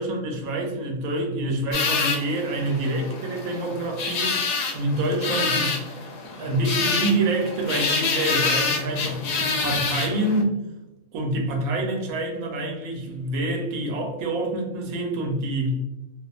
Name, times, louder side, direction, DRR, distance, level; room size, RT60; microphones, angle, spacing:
voice 1, 0.0-4.3 4.7-10.6 11.1-15.8, right 1 dB, 85° right, 2 dB, 1.1 m, -26 dB
sound 1, 1.7-10.4, left 4 dB, 80° left, 1.0 m, -27 dB
2.6 x 2.3 x 2.3 m, 0.97 s
omnidirectional pair, 1.5 m